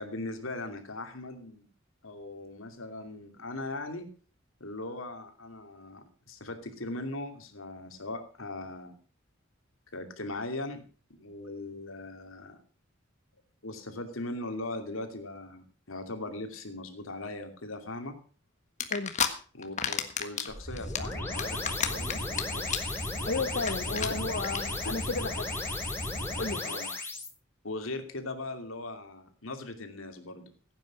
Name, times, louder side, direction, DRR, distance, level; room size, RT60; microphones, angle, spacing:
voice 1, 0.0-1.7 2.0-4.1 4.6-9.0 9.9-10.8 11.1-12.6 13.6-18.2 19.5-22.7 23.9-24.1 26.6-26.9 27.6-30.5, left 2 dB, 80° left, 6 dB, 2.7 m, -39 dB
sound 1, 18.8-19.3 19.6-20.5 20.8-22.4 22.7-23.0 23.3-23.4 23.6-23.7 24.0-24.1 24.4-24.6, left 7 dB, 35° left, 1.5 m, -29 dB
sound 2, 20.5-27.3, left 2 dB, 10° left, 3.0 m, -34 dB
voice 2, 23.3-25.5 26.4-26.6, left 3 dB, 55° left, 7 dB, 0.9 m, -33 dB
16.0 x 9.0 x 6.2 m, 0.40 s
head